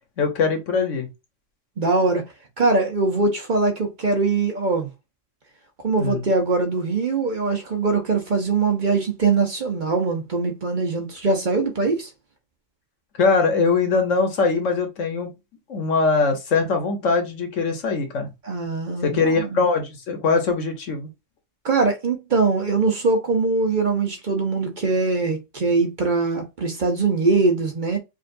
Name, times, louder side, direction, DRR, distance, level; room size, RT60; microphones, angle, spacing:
voice 1, 0.2-1.1 6.0-6.2 13.2-15.3 15.7-18.3 19.0-21.1, left 4 dB, 75° left, 1.3 m, -21 dB
voice 2, 1.8-2.2 2.6-4.9 5.8-12.1 18.4-19.6 21.6-28.0, right 3 dB, 45° right, 0.9 m, -22 dB
5.1 x 2.5 x 2.6 m
omnidirectional pair, 1.3 m